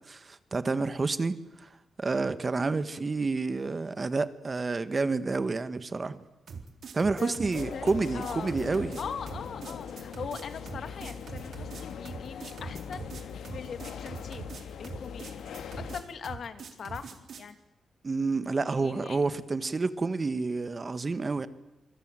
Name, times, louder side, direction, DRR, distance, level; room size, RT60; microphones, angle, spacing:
voice 1, 0.1-1.7 2.0-6.2 6.9-8.9 18.0-21.5, right 3 dB, 30° right, 12 dB, 1.6 m, -29 dB
sound 1, 6.5-17.5, right 5 dB, 65° right, 3.9 m, -43 dB
voice 2, 7.2-8.5 9.0-14.5 14.8-15.4 15.9-17.6 18.8-19.2, left 6 dB, 65° left, 10 dB, 2.3 m, -41 dB
sound 2, 7.5-16.0, left 7 dB, 90° left, 2.4 m, -41 dB
27.5 x 21.5 x 9.2 m, 0.93 s
cardioid pair, 100°, 0 cm